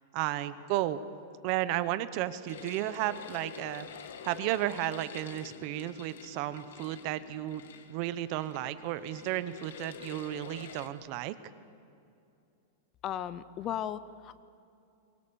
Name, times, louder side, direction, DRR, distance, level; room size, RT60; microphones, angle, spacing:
voice 1, 0.1-1.0 1.4-3.9 4.2-11.4, right 14 dB, 40° right, 14 dB, 0.8 m, -33 dB
sound 1, 2.5-10.9, left 8 dB, 80° left, 1.8 m, -48 dB
voice 2, 13.0-14.4, left 10 dB, 25° left, 15 dB, 0.5 m, -36 dB
23.5 x 22.5 x 6.9 m, 2.6 s
supercardioid pair, 170°, 0 cm